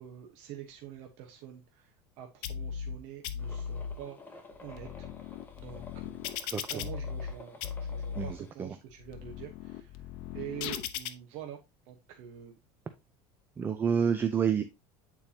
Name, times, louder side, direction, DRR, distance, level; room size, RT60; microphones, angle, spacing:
voice 1, 0.0-6.3 6.7-10.1 10.3-11.6 11.9-12.6, right 11 dB, 65° right, 1.1 m, -46 dB
sound 1, 2.4-3.0 3.2-4.0 4.5-7.3 7.6-8.3 8.9-11.1, left 8 dB, 70° left, 0.7 m, -38 dB
sound 2, 3.4-8.5, left 3 dB, 15° left, 1.0 m, -51 dB
voice 2, 6.5-6.9 8.2-8.7 13.6-14.6, right 7 dB, 15° right, 0.4 m, -29 dB
8.6 x 4.5 x 2.8 m
cardioid pair, 160°, 12 cm